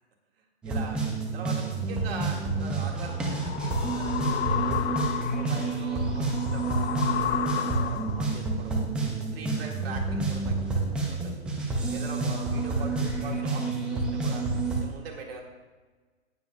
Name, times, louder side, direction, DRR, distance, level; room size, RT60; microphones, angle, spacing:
sound 1, 0.6-14.8, right 3 dB, 5° right, 0.3 m, -29 dB
voice 1, 0.6-1.0 1.3-4.8 5.2-8.9 9.3-11.5 11.9-14.4 14.8-15.4, right 5 dB, 55° right, 0 dB, 2.1 m, -42 dB
sound 2, 2.6-8.4, left 11 dB, 70° left, 0.5 m, -33 dB
17.5 x 7.1 x 2.3 m, 1.3 s
hypercardioid pair, 140°, 34 cm